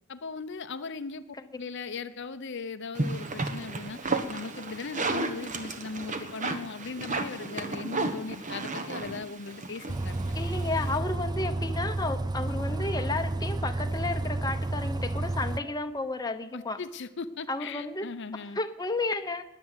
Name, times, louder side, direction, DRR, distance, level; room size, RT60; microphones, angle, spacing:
voice 1, 0.1-1.2 1.6-10.3 16.5-18.6, left 4 dB, 55° left, 10 dB, 0.7 m, -38 dB
sound 1, 2.9-11.0, right 3 dB, 35° right, 1.3 m, -33 dB
Bus, 9.9-15.6, right 2 dB, 20° right, 0.4 m, -31 dB
voice 2, 10.3-16.8 17.5-18.0 18.3-19.4, left 2 dB, 20° left, 7 dB, 0.9 m, -32 dB
20.5 x 7.8 x 8.0 m, 0.90 s
head